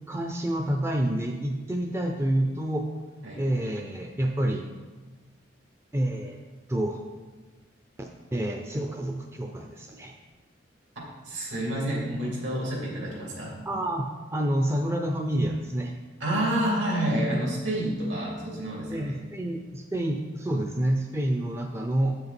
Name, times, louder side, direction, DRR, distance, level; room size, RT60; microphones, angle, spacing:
voice 1, 0.1-2.9 3.4-4.7 5.9-6.4 6.7-7.0 8.0-10.1 13.7-15.9 18.9-22.2, right 1 dB, 15° right, 3 dB, 0.4 m, -28 dB
voice 2, 11.2-13.6 16.2-19.2, right 1 dB, 75° right, -4 dB, 2.9 m, -28 dB
7.8 x 6.8 x 4.3 m, 1.3 s
head